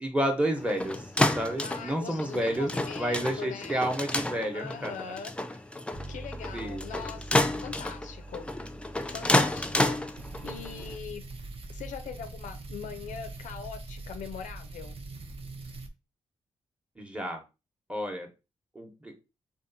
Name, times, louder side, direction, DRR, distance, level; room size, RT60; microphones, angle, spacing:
voice 1, 0.0-2.7 3.0-4.9 6.5-6.8 17.0-17.4 17.9-18.3 18.7-19.1, right 1 dB, 10° right, 0.9 m, -30 dB
sound 1, 0.6-10.9, left 1 dB, 10° left, 0.4 m, -30 dB
voice 2, 1.6-3.9 4.5-5.3 6.1-8.5 9.1-10.0 10.4-11.2 11.7-14.9, left 7 dB, 70° left, 0.4 m, -41 dB
Bass guitar, 5.9-15.7, right 2 dB, 65° right, 1.3 m, -48 dB
sound 2, 10.2-15.9, right 2 dB, 45° right, 0.6 m, -42 dB
2.6 x 2.3 x 2.6 m
supercardioid pair, 45°, 13 cm